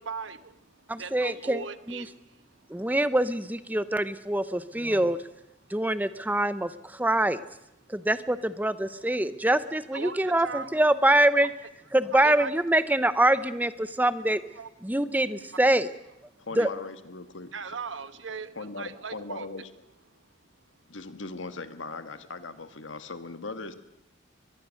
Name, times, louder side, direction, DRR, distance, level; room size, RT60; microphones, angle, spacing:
voice 1, 0.0-2.8 9.9-10.7 12.2-12.5 14.6-14.7 15.5-15.6 16.6-16.7 17.5-19.5, right 5 dB, 80° right, 13 dB, 1.1 m, -39 dB
voice 2, 0.9-2.0 2.7-5.2 5.7-7.4 7.9-11.5 11.9-14.4 14.8-15.9 16.6-16.7, right 1 dB, 10° right, 13 dB, 0.8 m, -24 dB
voice 3, 16.4-17.5 18.5-19.7 20.9-23.7, left 3 dB, 80° left, 10 dB, 1.6 m, -39 dB
22.5 x 22.0 x 6.5 m, 0.86 s
head